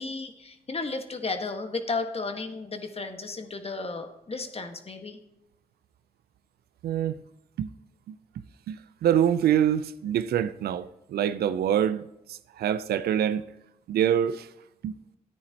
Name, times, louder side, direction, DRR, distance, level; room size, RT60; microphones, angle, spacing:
voice 1, 0.0-5.2, left 3 dB, 40° left, 1.5 m, -33 dB
voice 2, 6.8-7.2 7.6-7.7 8.1-8.2 8.7-12.0 12.3-13.5 13.9-14.5 14.8-14.9, right 10 dB, 90° right, 0.5 m, -25 dB
13.5 x 9.7 x 2.9 m
cardioid pair, 60°, 16 cm